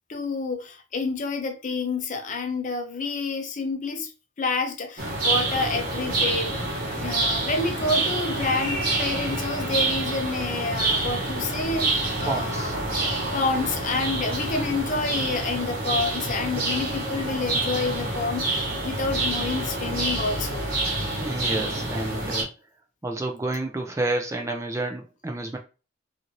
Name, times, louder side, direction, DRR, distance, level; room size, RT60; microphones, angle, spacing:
voice 1, 0.1-4.1 4.4-6.5 7.0-20.6, left 3 dB, 40° left, 0.5 m, -28 dB
sound 1, 5.0-22.4, right 2 dB, 50° right, 1.1 m, -27 dB
voice 2, 12.3-12.8 21.2-22.5 23.0-25.6, right 2 dB, 15° right, 0.4 m, -29 dB
2.9 x 2.5 x 2.7 m
head